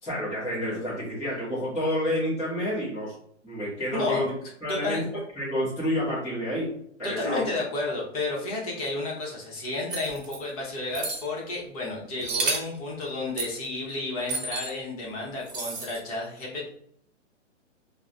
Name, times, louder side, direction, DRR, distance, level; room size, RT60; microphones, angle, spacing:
voice 1, 0.0-3.1 3.4-4.3 4.6-5.0 5.3-6.7 7.0-7.4, equal, 5° left, -14 dB, 0.5 m, -29 dB
voice 2, 4.7-5.0 7.0-16.7, left 2 dB, 30° left, -3 dB, 0.8 m, -31 dB
sound 1, 9.9-10.4 10.9-11.2 12.2-12.8 13.4-13.6 14.3-14.7 15.5-16.0, right 4 dB, 45° right, 0.9 m, -31 dB
3.0 x 2.1 x 2.4 m, 0.68 s
hypercardioid pair, 155°, 37 cm